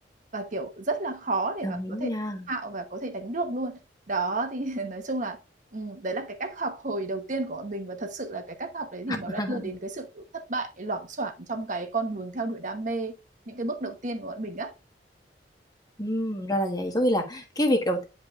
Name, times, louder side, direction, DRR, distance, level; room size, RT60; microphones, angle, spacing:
voice 1, 0.3-2.1 2.5-3.8 4.1-5.4 5.7-13.1 13.5-14.7, right 2 dB, 45° right, 1.1 m, -32 dB
voice 2, 1.6-2.5 9.4-9.7 16.0-18.0, equal, 20° left, 1.4 m, -27 dB
10.0 x 5.2 x 2.5 m
head